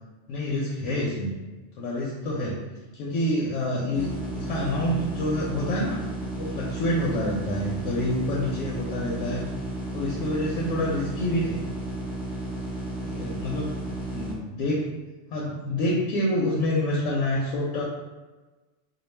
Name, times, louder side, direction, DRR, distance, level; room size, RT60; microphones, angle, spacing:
voice 1, 0.3-1.3 1.8-2.6 2.9-6.0 6.4-9.4 9.9-11.6 13.0-13.8 14.1-14.9 15.3-17.8, left 1 dB, 85° left, -5 dB, 0.9 m, -27 dB
sound 1, 3.9-14.3, right 1 dB, ahead, 0.7 m, -33 dB
2.2 x 2.2 x 3.1 m, 1.2 s
omnidirectional pair, 1.3 m